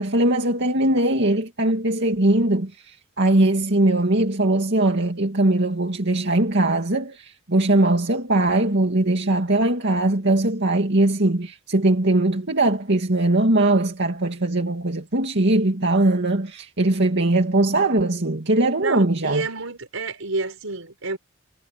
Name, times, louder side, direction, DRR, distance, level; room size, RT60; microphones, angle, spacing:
voice 1, 0.0-19.5, right 2 dB, 55° right, 2.4 m, -20 dB
voice 2, 18.8-21.2, right 3 dB, 75° right, 5.1 m, -29 dB
head